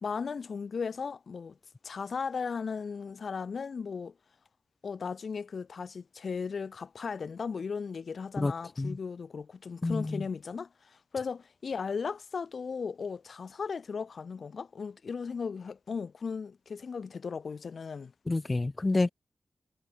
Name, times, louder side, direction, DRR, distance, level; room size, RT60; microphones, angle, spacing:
voice 1, 0.0-1.6 1.8-4.1 4.8-18.1, left 5 dB, 75° left, 1.3 m, -36 dB
voice 2, 9.8-10.2 18.3-19.1, left 2 dB, 35° left, 0.8 m, -28 dB
wide cardioid pair, 70°, 0 cm